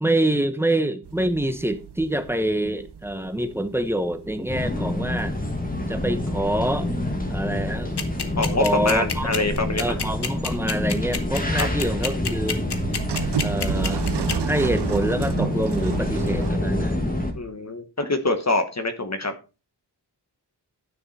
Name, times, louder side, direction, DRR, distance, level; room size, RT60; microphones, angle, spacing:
voice 1, 0.0-5.3 5.9-6.9 7.3-7.9 8.6-9.3 9.8-12.6 13.4-17.0, right 1 dB, 5° right, 0.9 m, -26 dB
sound 1, 1.0-16.5, right 8 dB, 75° right, 0.7 m, -34 dB
sound 2, 4.5-17.3, left 1 dB, 20° left, 1.8 m, -27 dB
sound 3, 8.0-14.3, left 6 dB, 70° left, 1.3 m, -27 dB
voice 2, 8.4-9.8 11.5-11.7 17.4-19.3, left 2 dB, 40° left, 1.2 m, -25 dB
11.0 x 6.4 x 4.2 m
wide cardioid pair, 105°, 41 cm